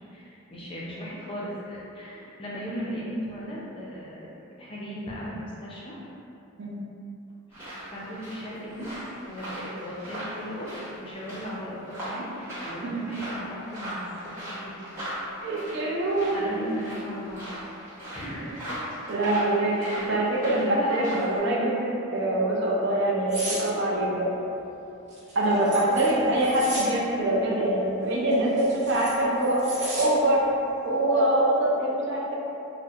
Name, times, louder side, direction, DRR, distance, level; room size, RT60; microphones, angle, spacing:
voice 1, 0.0-4.3 4.6-6.0 7.5-8.9 9.2-14.8 16.3-18.9 19.8-21.1, equal, 25° left, -6 dB, 0.5 m, -37 dB
sound 1, 7.5-21.4, equal, 15° right, 1.3 m, -39 dB
voice 2, 15.4-16.8 19.1-19.7 20.1-24.3 25.4-30.4 30.8-32.3, right 1 dB, 55° right, -4 dB, 0.5 m, -24 dB
sound 2, 23.3-23.6 25.1-26.9 28.3-30.1 30.5-30.7, right 1 dB, 30° right, 1.2 m, -35 dB
4.3 x 2.0 x 2.4 m, 2.8 s
head